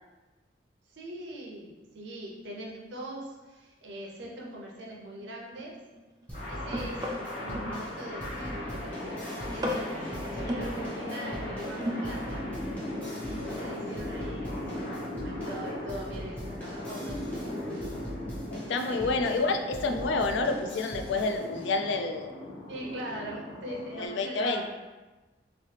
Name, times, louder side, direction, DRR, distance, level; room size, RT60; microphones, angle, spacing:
voice 1, 0.9-5.7 6.5-7.0 7.3-12.4 13.2-18.0 18.9-19.5 22.7-24.7, right 1 dB, 80° right, -2 dB, 0.6 m, -42 dB
sound 1, 4.2-4.3 4.8-7.8 8.2-8.6 9.0-9.2 9.5-10.7 11.6-12.3 12.6-12.7, equal, 20° right, 0.3 m, -36 dB
sound 2, 6.3-24.1, left 1 dB, 45° left, 0.9 m, -38 dB
sound 3, 6.3-21.6, equal, 10° left, 0.7 m, -42 dB
voice 2, 18.5-22.3 23.7-24.7, left 3 dB, 80° left, 6 dB, 0.3 m, -29 dB
3.0 x 2.8 x 3.2 m, 1.2 s
head